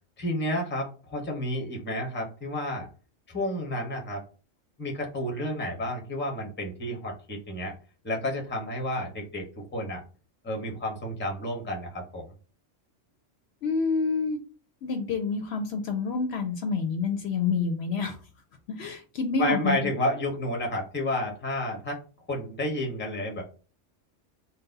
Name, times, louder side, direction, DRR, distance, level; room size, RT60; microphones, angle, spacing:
voice 1, 0.2-2.9 3.3-4.2 4.8-7.8 8.0-10.0 10.4-12.3 19.4-22.0 22.3-23.4, left 1 dB, 10° left, 2 dB, 0.7 m, -31 dB
voice 2, 13.6-14.4 14.8-18.2 18.7-19.9, left 4 dB, 65° left, 6 dB, 0.8 m, -28 dB
4.0 x 2.2 x 3.9 m, 0.36 s
omnidirectional pair, 1.3 m